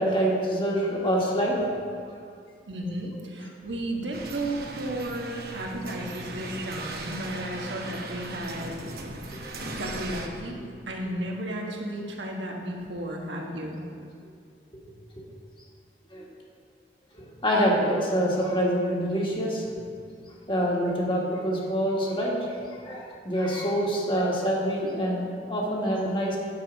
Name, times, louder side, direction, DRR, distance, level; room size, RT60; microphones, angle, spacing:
voice 1, 0.0-1.7 2.1-2.2 9.4-9.7 16.1-16.2 17.1-19.7 20.5-22.5 22.8-26.4, equal, 30° left, -3 dB, 1.5 m, -26 dB
voice 2, 2.7-8.7 9.8-10.6 10.9-13.8, right 1 dB, 90° right, 0 dB, 1.4 m, -33 dB
sound 1, 4.1-10.3, right 2 dB, 55° right, 0.9 m, -38 dB
9.4 x 6.4 x 5.1 m, 2.2 s
head